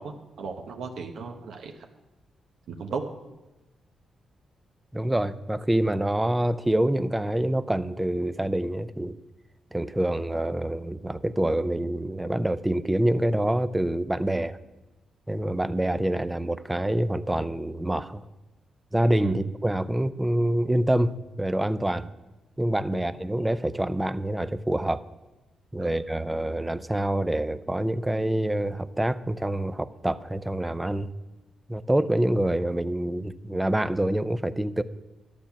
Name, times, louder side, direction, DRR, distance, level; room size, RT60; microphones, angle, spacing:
voice 1, 0.0-1.7 2.7-3.0 19.2-19.4 22.9-23.0 25.8-25.9, right 5 dB, 75° right, 3 dB, 1.0 m, -35 dB
voice 2, 4.9-9.2 9.7-14.6 15.3-18.2 18.9-22.1 22.6-25.0 25.7-31.1 31.7-34.8, right 1 dB, 10° right, 14 dB, 0.5 m, -26 dB
12.5 x 8.7 x 5.9 m, 1.1 s
cardioid pair, 110°, 0 cm